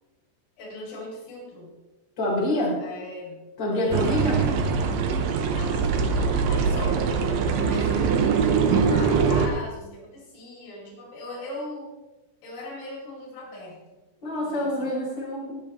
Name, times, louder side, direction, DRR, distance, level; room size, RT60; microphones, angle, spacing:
voice 1, 0.6-1.7 2.8-3.4 3.7-5.0 5.6-11.9 12.4-13.8 14.3-14.9, left 1 dB, 75° left, -3 dB, 5.4 m, -39 dB
voice 2, 2.2-2.8 3.6-4.4 14.2-15.5, left 1 dB, 25° left, -5 dB, 4.2 m, -26 dB
sound 1, 3.9-9.5, right 5 dB, 90° right, 2.0 m, -22 dB
22.0 x 7.5 x 3.1 m, 1.1 s
omnidirectional pair, 5.5 m